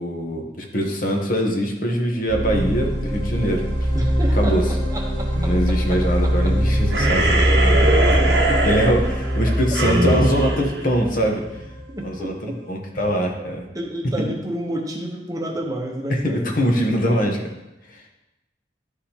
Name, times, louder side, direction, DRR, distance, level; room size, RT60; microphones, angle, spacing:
voice 1, 0.0-3.7 4.3-4.6 5.4-7.4 8.6-11.4 12.0-13.7 16.2-17.5 17.9-18.1, equal, 50° left, 1 dB, 1.0 m, -22 dB
sound 1, 2.3-12.1, equal, 30° left, 1.5 m, -22 dB
voice 2, 3.9-6.5 8.4-8.8 11.9-12.5 13.3-13.4 13.7-16.5, right 1 dB, 20° right, 0 dB, 0.9 m, -31 dB
sound 2, 6.9-11.6, right 2 dB, 60° right, 0.9 m, -22 dB
11.5 x 5.0 x 2.9 m, 0.96 s
head